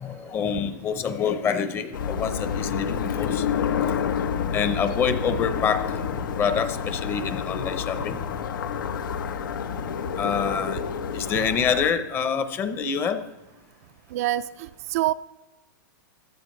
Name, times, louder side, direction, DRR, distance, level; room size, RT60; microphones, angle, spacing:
voice 1, 0.0-3.5 4.5-8.2 8.7-8.8 10.2-10.9 11.1-13.2, left 6 dB, 20° left, 10 dB, 0.8 m, -26 dB
sound 1, 1.9-11.9, left 7 dB, 80° left, 1.0 m, -29 dB
voice 2, 14.1-15.1, right 14 dB, 45° right, 12 dB, 0.4 m, -26 dB
17.0 x 12.5 x 3.2 m, 1.0 s
supercardioid pair, 160°, 11 cm